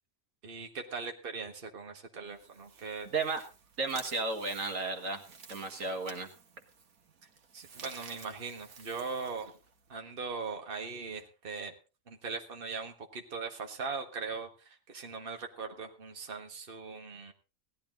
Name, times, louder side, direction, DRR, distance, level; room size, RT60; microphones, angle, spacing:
voice 1, 0.4-3.1 7.5-9.5 9.9-11.7 12.1-17.3, right 4 dB, 40° right, 4 dB, 1.8 m, -40 dB
sound 1, 2.3-10.0, right 5 dB, 85° right, 1.8 m, -53 dB
voice 2, 3.1-3.4 3.8-5.2 5.5-6.3, right 3 dB, 70° right, 6 dB, 2.0 m, -33 dB
17.5 x 12.0 x 3.8 m, 0.32 s
omnidirectional pair, 1.5 m